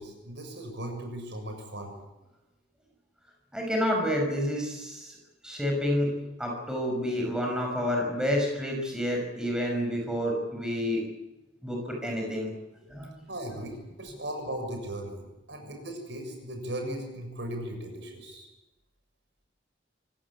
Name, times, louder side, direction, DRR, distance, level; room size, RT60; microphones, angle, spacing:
voice 1, 0.0-1.9 13.3-18.5, right 1 dB, 65° right, 4 dB, 7.0 m, -37 dB
voice 2, 3.5-5.1 5.4-11.0 11.6-12.5 12.9-13.1, equal, 5° right, 0 dB, 5.9 m, -29 dB
26.0 x 17.5 x 8.5 m, 0.98 s
head